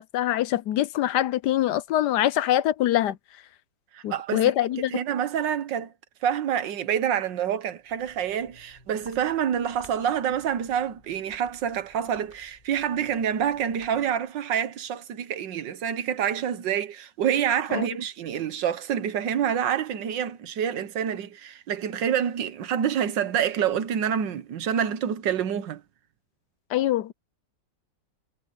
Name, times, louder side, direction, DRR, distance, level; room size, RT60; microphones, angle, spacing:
voice 1, 0.0-3.2 4.0-4.9 17.7-17.9 26.7-27.1, left 13 dB, 75° left, 1.2 m, -24 dB
voice 2, 3.9-4.4 4.9-5.9 6.2-25.8, right 9 dB, 80° right, 1.7 m, -27 dB
Walk footsteps, 7.8-14.3, left 1 dB, 30° left, 4.9 m, -54 dB
omnidirectional pair, 1.9 m